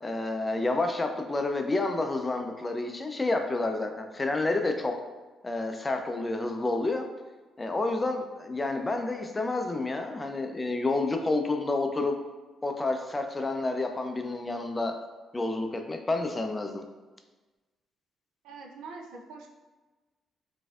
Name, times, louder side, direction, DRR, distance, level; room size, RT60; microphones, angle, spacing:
voice 1, 0.0-5.0 5.4-7.1 7.6-12.1 12.6-15.0 15.3-16.8, left 2 dB, 20° left, 5 dB, 0.4 m, -29 dB
voice 2, 18.4-19.5, right 4 dB, 90° right, 2 dB, 0.4 m, -44 dB
4.1 x 2.6 x 2.3 m, 1.2 s
cardioid pair, 90°, 0 cm